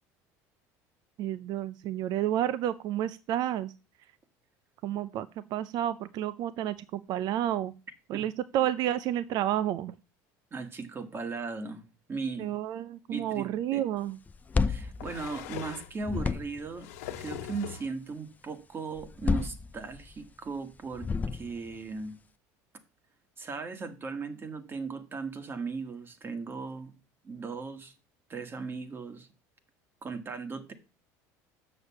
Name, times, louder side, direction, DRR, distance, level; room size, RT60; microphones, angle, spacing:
voice 1, 1.2-3.7 4.8-7.7 8.1-9.9 12.4-14.2, right 12 dB, 55° right, 0.5 m, -30 dB
voice 2, 10.5-12.5 13.1-13.8 14.7-22.2 23.4-26.9 27.2-27.9 28.3-29.3 30.0-30.7, right 4 dB, 30° right, 1.6 m, -38 dB
sound 1, 13.5-13.6 14.6-16.0 16.6-17.9 18.9-19.0 19.4-19.5, left 10 dB, 85° left, 1.1 m, -41 dB
sound 2, 14.3-15.7 16.0-16.8 19.0-20.2 20.9-21.8, left 4 dB, 20° left, 0.5 m, -31 dB
6.8 x 6.4 x 7.0 m
supercardioid pair, 100°, 8 cm